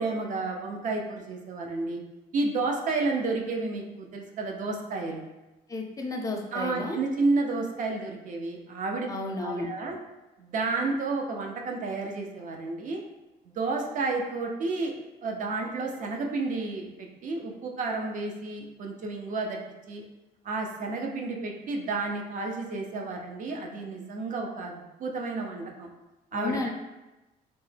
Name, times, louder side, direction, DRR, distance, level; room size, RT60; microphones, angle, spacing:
voice 1, 0.0-2.0 2.3-5.2 6.5-9.1 9.4-10.0 10.4-13.0 13.5-14.9 15.2-19.6 19.9-20.0 20.4-25.9 26.3-26.7, right 3 dB, 50° right, 1 dB, 0.5 m, -31 dB
voice 2, 5.7-7.0 9.1-9.7 26.3-26.7, left 2 dB, 20° left, 1 dB, 0.5 m, -32 dB
3.2 x 2.0 x 3.2 m, 1.0 s
cardioid pair, 110°, 17 cm